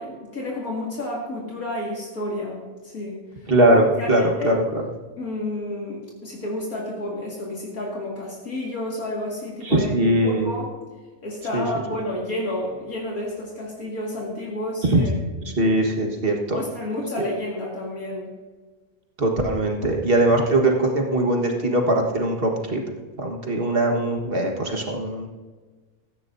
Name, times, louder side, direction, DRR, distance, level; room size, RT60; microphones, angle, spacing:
voice 1, 0.0-3.2 3.9-4.6 5.2-10.7 11.2-15.1 15.4-15.5 16.5-18.3, left 1 dB, 70° left, -4 dB, 2.5 m, -30 dB
voice 2, 3.5-4.6 9.6-10.5 11.5-11.6 14.9-15.0 15.6-16.6 19.2-22.8 23.2-25.3, right 1 dB, 40° right, 1 dB, 1.6 m, -21 dB
16.5 x 14.0 x 2.7 m, 1.3 s
omnidirectional pair, 1.6 m